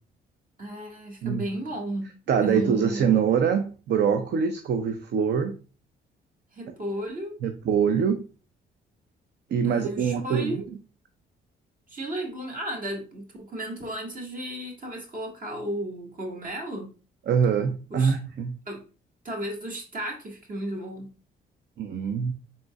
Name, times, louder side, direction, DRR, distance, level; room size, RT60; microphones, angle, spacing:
voice 1, 0.6-2.1 2.4-3.1 6.5-7.4 9.6-10.6 11.9-16.9 17.9-18.1 18.6-18.8 19.2-21.1, right 1 dB, 40° right, 1.7 m, -34 dB
voice 2, 2.3-5.6 7.4-8.2 9.5-10.6 17.3-18.5 21.8-22.3, right 7 dB, 55° right, 0.5 m, -24 dB
4.1 x 3.8 x 2.3 m
supercardioid pair, 70°, 21 cm